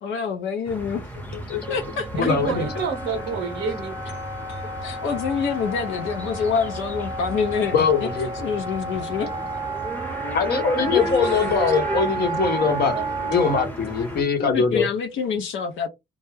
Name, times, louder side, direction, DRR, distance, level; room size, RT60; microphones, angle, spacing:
voice 1, 0.0-1.0 1.7-2.3 4.5-9.3 10.8-11.3 14.4-15.9, left 6 dB, 75° left, 0.6 m, -26 dB
sound 1, 0.7-14.2, equal, 10° left, 0.8 m, -35 dB
voice 2, 1.3-1.6 2.1-2.7 7.7-8.5 10.3-12.9 13.3-14.9, left 5 dB, 55° left, 0.9 m, -22 dB
Wind instrument woodwind instrument, 1.6-13.7, right 3 dB, 15° right, 0.5 m, -32 dB
voice 3, 2.1-4.0 11.6-11.7 12.9-13.1, right 5 dB, 75° right, 0.7 m, -28 dB
2.2 x 2.0 x 3.2 m
cardioid pair, 90°, 20 cm